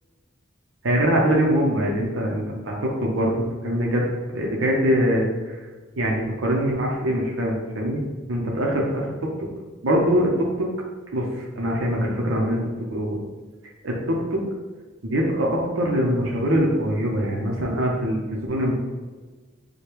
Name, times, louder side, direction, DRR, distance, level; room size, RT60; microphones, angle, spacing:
voice 1, 0.8-5.6 6.0-8.0 8.3-9.5 9.8-10.7 11.1-12.6 12.9-13.2 13.8-14.4 15.0-18.7, equal, 85° right, -2 dB, 0.8 m, -23 dB
5.0 x 2.3 x 4.5 m, 1.3 s
head